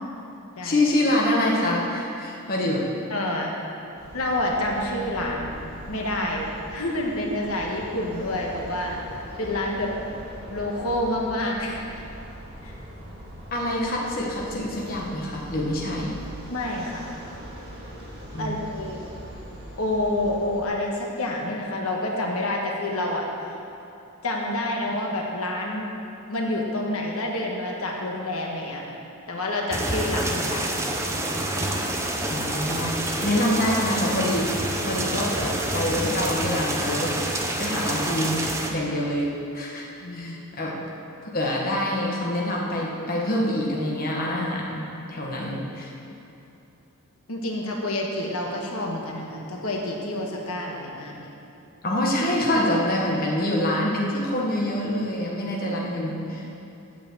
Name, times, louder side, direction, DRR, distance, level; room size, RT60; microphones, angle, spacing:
voice 1, 0.6-2.8 13.5-16.1 18.3-18.6 32.3-34.5 34.9-37.2 37.6-38.4 38.7-39.9 40.1-40.7 41.2-45.9 51.8-56.5, left 1 dB, 40° left, -3 dB, 1.2 m, -26 dB
voice 2, 3.1-3.6 4.1-5.5 5.9-9.0 9.4-9.9 10.5-12.1 12.6-12.8 16.5-17.1 18.4-19.0 19.8-23.6 24.2-25.9 26.3-29.0 29.3-30.8 40.0-40.7 47.3-51.3, left 1 dB, 75° left, -1 dB, 1.4 m, -28 dB
sound 1, 4.0-20.6, equal, 45° right, 2.0 m, -41 dB
sound 2, 29.7-38.7, right 1 dB, 15° right, 0.7 m, -27 dB
8.6 x 6.8 x 7.5 m, 2.9 s
head